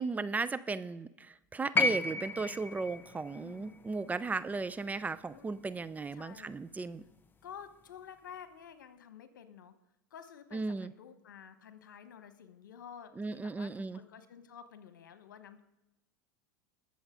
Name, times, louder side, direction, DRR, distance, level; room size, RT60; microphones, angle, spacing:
voice 1, 0.0-7.0 10.5-10.9 13.2-14.0, right 4 dB, 15° right, 14 dB, 0.5 m, -36 dB
sound 1, 1.7-5.9 7.1-7.2, left 3 dB, 20° left, 0.8 m, -34 dB
voice 2, 3.3-3.8 5.3-5.7 6.1-6.5 7.4-9.7 10.1-15.6, left 8 dB, 85° left, 10 dB, 1.2 m, -51 dB
21.0 x 7.2 x 3.8 m, 0.89 s
hypercardioid pair, 95°, 10 cm